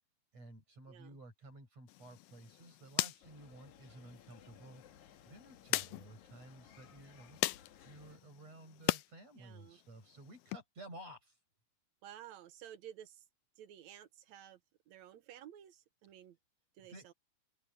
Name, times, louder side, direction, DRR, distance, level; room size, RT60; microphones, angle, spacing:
voice 1, 0.3-4.8 5.3-7.4 7.9-11.4 16.9-17.1, right 1 dB, 50° right, 9.2 m, -54 dB
sound 1, 1.9-9.1 9.5-10.6, left 18 dB, 85° left, 2.1 m, -41 dB
sound 2, 3.2-8.2, left 9 dB, 65° left, 3.0 m, -60 dB
voice 2, 9.4-9.8 12.0-13.2 13.6-14.6 14.9-16.4 16.8-17.1, right 11 dB, 70° right, 2.0 m, -53 dB
open air
omnidirectional pair, 3.7 m